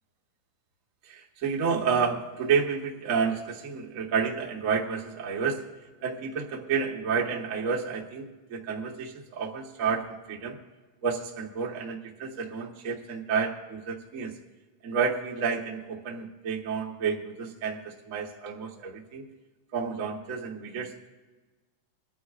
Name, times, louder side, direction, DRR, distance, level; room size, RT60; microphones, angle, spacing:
voice 1, 1.0-5.7 6.0-10.6 11.0-14.3 14.8-19.3 19.7-21.1, right 6 dB, 60° right, 0 dB, 0.8 m, -30 dB
27.5 x 10.0 x 2.4 m, 1.3 s
omnidirectional pair, 3.4 m